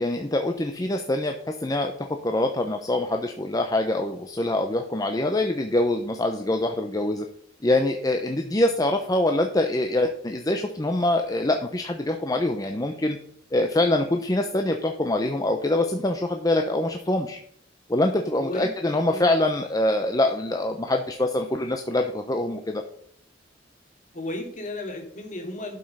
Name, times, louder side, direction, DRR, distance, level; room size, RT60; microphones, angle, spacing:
voice 1, 0.0-1.3 1.6-7.3 7.6-13.2 13.5-17.4 17.9-22.8, left 1 dB, 20° left, 4 dB, 0.7 m, -24 dB
voice 2, 18.4-18.7 19.1-19.3 24.1-25.8, left 1 dB, 40° left, 2 dB, 2.5 m, -34 dB
11.5 x 5.5 x 5.5 m, 0.64 s
head